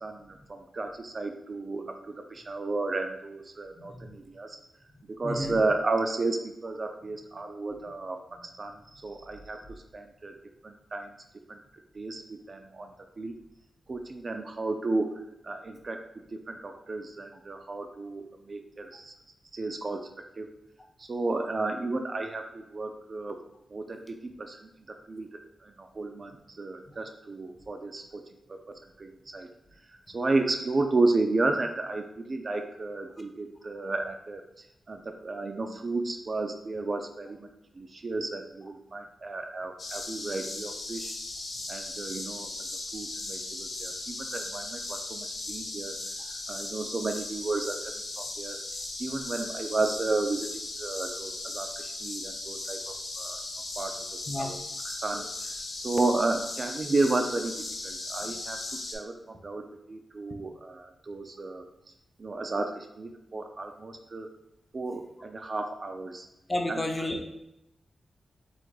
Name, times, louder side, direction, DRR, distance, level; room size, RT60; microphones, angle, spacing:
voice 1, 0.0-4.6 5.1-10.3 10.6-11.1 11.5-11.6 11.9-13.4 13.9-19.1 19.5-20.1 20.4-20.5 21.0-23.4 23.7-28.2 28.5-29.5 29.9-34.4 34.9-37.5 37.8-41.2 41.7-46.0 46.3-48.6 49.0-50.5 50.8-53.4 53.8-54.0 54.4-54.6 54.8-57.5 57.8-61.6 62.2-64.3 64.7-66.3 66.7-66.8, right 3 dB, 35° right, 5 dB, 0.3 m, -33 dB
voice 2, 3.7-4.1 5.2-5.6 54.3-54.5 55.2-55.3 58.2-58.3 66.5-67.3, left 1 dB, 20° left, 2 dB, 0.5 m, -32 dB
sound 1, 39.8-58.9, left 2 dB, 60° left, 0.7 m, -37 dB
3.8 x 2.5 x 4.6 m, 0.84 s
wide cardioid pair, 170°, 0 cm